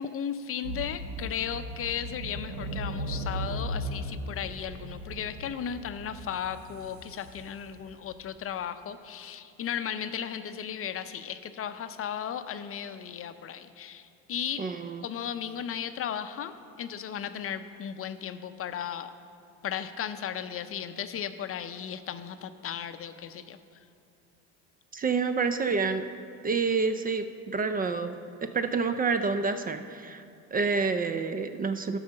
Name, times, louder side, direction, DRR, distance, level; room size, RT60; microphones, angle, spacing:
voice 1, 0.0-14.7 15.0-19.1 19.6-23.6, left 8 dB, 40° left, 10 dB, 0.6 m, -35 dB
sound 1, 0.6-8.1, right 1 dB, 80° right, 1.1 m, -37 dB
voice 2, 14.6-15.1 24.9-26.1 26.4-30.2 30.5-32.0, right 4 dB, 25° right, 9 dB, 0.4 m, -28 dB
11.5 x 4.9 x 6.5 m, 2.4 s
supercardioid pair, 95°, 35 cm